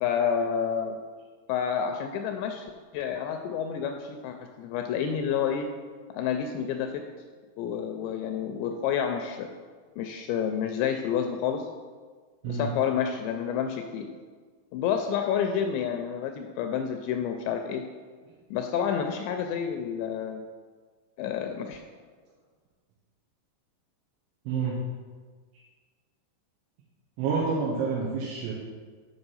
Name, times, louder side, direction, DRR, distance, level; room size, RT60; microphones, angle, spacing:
voice 1, 0.0-1.0 1.5-5.7 6.1-7.0 7.6-9.5 10.0-11.7 12.5-14.1 14.7-17.8 18.5-20.4 21.2-21.8, left 7 dB, 85° left, 5 dB, 2.6 m, -29 dB
voice 2, 24.5-24.8 27.2-28.5, right 4 dB, 85° right, -4 dB, 3.4 m, -28 dB
8.0 x 5.2 x 5.5 m, 1.5 s
omnidirectional pair, 5.3 m